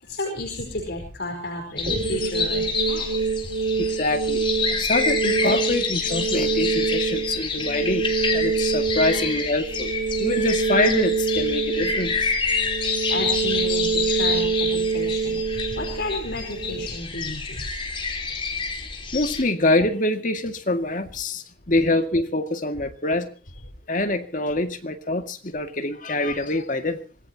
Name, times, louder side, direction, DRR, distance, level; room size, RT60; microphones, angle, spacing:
voice 1, 0.0-3.1 9.1-9.2 13.1-17.6, left 1 dB, 70° left, 4.8 m, -32 dB
sound 1, 1.8-19.4, left 4 dB, 30° left, 3.5 m, -28 dB
sound 2, 1.9-16.9, right 5 dB, 50° right, 2.6 m, -26 dB
voice 2, 3.8-9.9 10.2-12.3 19.1-23.3 23.9-27.0, left 2 dB, 45° left, 2.1 m, -25 dB
25.0 x 19.0 x 2.9 m
head